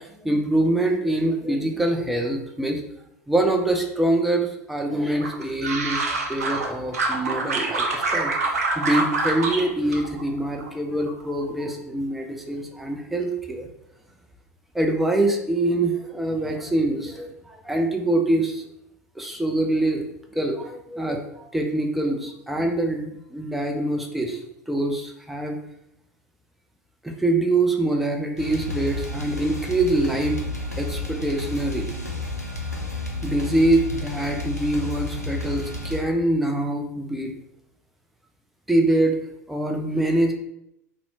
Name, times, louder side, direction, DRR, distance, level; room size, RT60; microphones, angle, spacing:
voice 1, 0.0-2.8 3.3-6.0 6.3-13.7 14.7-18.6 19.2-20.0 20.3-24.4 24.7-25.6 27.0-30.4 30.8-31.9 33.2-37.3 38.7-39.2 39.5-40.3, right 1 dB, ahead, 2 dB, 0.3 m, -24 dB
sound 1, 5.2-6.7 6.9-9.6 9.9-10.7 11.0-11.4, right 3 dB, 70° right, 0.4 m, -25 dB
sound 2, 28.4-36.0, left 2 dB, 90° left, 0.4 m, -31 dB
2.6 x 2.0 x 2.7 m, 0.80 s
figure-of-eight pair, 80°, 8 cm